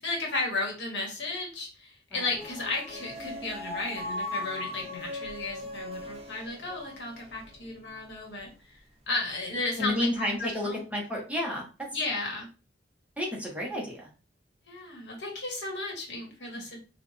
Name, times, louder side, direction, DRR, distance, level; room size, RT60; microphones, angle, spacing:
voice 1, 0.0-8.8 9.1-10.8 11.9-12.5 14.6-16.8, left 2 dB, 80° left, 0 dB, 1.6 m, -34 dB
sound 1, 2.3-7.7, left 1 dB, 35° right, 0.9 m, -39 dB
voice 2, 9.8-11.7 13.2-14.1 16.5-16.7, left 1 dB, 10° right, -2 dB, 1.2 m, -31 dB
4.2 x 2.5 x 3.3 m, 0.33 s
head